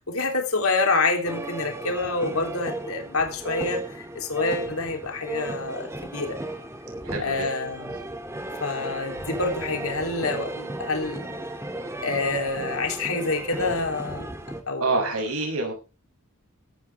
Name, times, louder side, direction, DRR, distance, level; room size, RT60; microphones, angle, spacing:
voice 1, 0.0-6.4 7.2-8.0 8.6-11.3 12.0-14.3 14.7-15.1, left 3 dB, 70° left, 3 dB, 3.3 m, -27 dB
sound 1, 1.2-14.6, right 1 dB, 15° right, 2.5 m, -35 dB
voice 2, 7.0-7.5 14.8-15.7, right 3 dB, 75° right, 2 dB, 6.8 m, -26 dB
16.5 x 13.5 x 3.5 m, 0.32 s
head